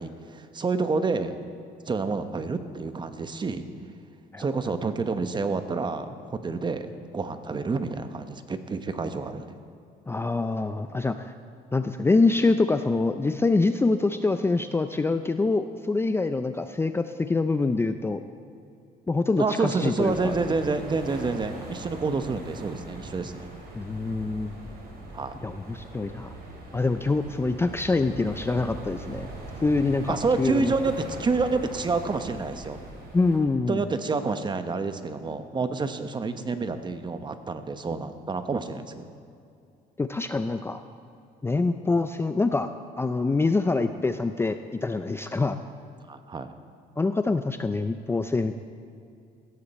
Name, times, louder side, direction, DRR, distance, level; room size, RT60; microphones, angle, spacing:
voice 1, 0.0-1.4 1.9-3.7 4.4-6.9 7.1-9.6 19.4-23.5 25.1-25.4 30.1-32.8 33.7-39.0 46.1-46.5, right 4 dB, 25° right, 9 dB, 1.0 m, -28 dB
voice 2, 10.1-11.2 11.7-18.2 19.1-20.3 23.7-24.5 25.4-26.3 26.7-29.3 29.6-30.7 33.1-33.8 40.0-40.8 41.4-42.7 43.0-45.6 47.0-48.5, left 3 dB, 15° left, 9 dB, 0.5 m, -25 dB
sound 1, 20.0-33.4, right 2 dB, 65° right, 4.0 m, -41 dB
16.5 x 14.0 x 4.3 m, 2.5 s
cardioid pair, 110°, 17 cm